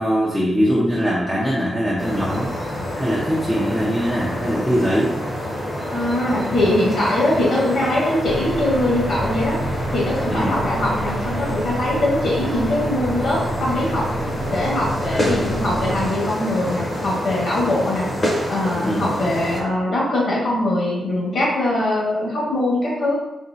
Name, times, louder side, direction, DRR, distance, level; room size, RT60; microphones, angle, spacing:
voice 1, 0.0-2.5 2.9-5.1 10.3-10.6 15.1-15.3 18.8-19.1, equal, ahead, -7 dB, 0.6 m, -21 dB
sound 1, 2.0-19.6, equal, 30° left, 0.9 m, -27 dB
voice 2, 5.9-9.6 9.9-14.0 14.5-18.1 18.5-23.1, left 1 dB, 60° left, -5 dB, 1.4 m, -22 dB
sound 2, 8.3-16.1, right 1 dB, 45° right, 0.8 m, -29 dB
4.2 x 2.9 x 2.7 m, 0.91 s
wide cardioid pair, 155°, 0 cm